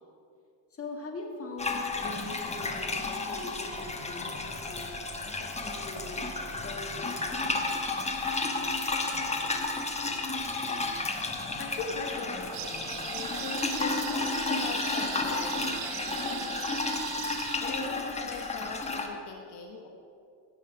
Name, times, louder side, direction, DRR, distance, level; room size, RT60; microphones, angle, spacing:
voice 1, 0.7-5.0 5.4-6.3 6.6-7.5, left 2 dB, 30° left, 1 dB, 1.9 m, -42 dB
sound 1, 1.6-19.1, left 3 dB, 15° left, 1.0 m, -32 dB
voice 2, 11.6-16.8 17.6-19.9, left 4 dB, 65° left, 1 dB, 1.2 m, -40 dB
sound 2, 12.5-17.6, right 16 dB, 70° right, 0.5 m, -39 dB
16.0 x 5.8 x 4.7 m, 2.4 s
cardioid pair, 110°, 44 cm